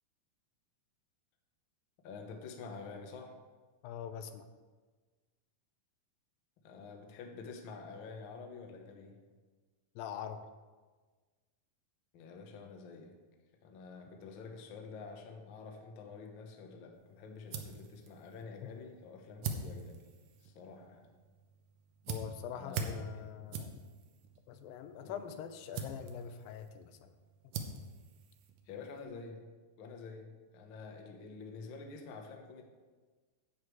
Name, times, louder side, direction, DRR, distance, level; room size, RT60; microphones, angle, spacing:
voice 1, 2.0-3.3 6.6-9.2 12.1-13.1 13.6-20.0 20.4-21.1 22.5-23.5 25.0-25.4 28.6-29.4 29.8-32.6, left 4 dB, 65° left, 2 dB, 1.2 m, -48 dB
voice 2, 3.8-4.5 10.0-10.5 22.1-23.7 24.5-27.1, left 8 dB, 90° left, 9 dB, 2.4 m, -43 dB
sound 1, 16.9-29.0, right 5 dB, 75° right, 2.3 m, -45 dB
10.5 x 8.1 x 4.7 m, 1.4 s
omnidirectional pair, 4.0 m